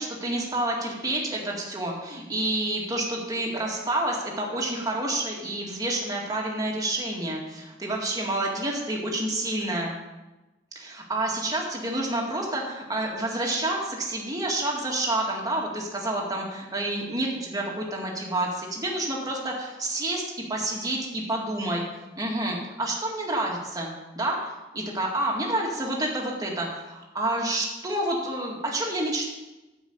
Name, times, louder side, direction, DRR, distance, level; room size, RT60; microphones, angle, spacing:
voice 1, 0.0-9.9 10.8-21.8 22.2-29.3, right 1 dB, 20° right, -2 dB, 2.1 m, -29 dB
9.6 x 5.5 x 7.9 m, 1.1 s
head